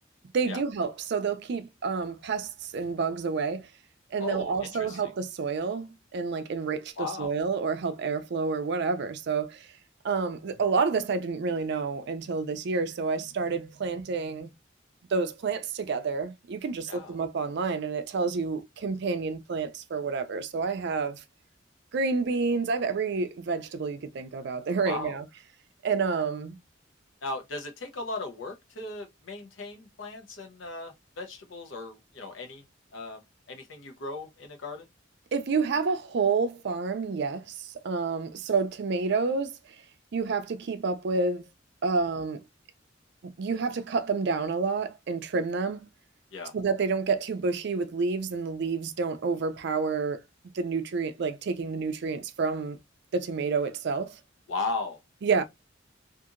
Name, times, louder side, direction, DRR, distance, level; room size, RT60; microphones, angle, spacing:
voice 1, 0.3-3.7 4.1-9.7 10.0-14.5 15.1-21.2 21.9-25.2 25.8-26.6 35.3-39.6 40.1-41.5 41.8-42.4 43.2-45.9 46.5-50.2 50.5-52.8 53.1-54.2 55.2-55.4, right 4 dB, 60° right, 0.4 m, -29 dB
voice 2, 4.2-5.0 7.0-7.3 16.9-17.2 24.8-25.2 27.2-32.6 32.9-34.9 46.3-46.5 54.5-55.0, left 3 dB, 75° left, 0.7 m, -37 dB
2.7 x 2.5 x 2.4 m
head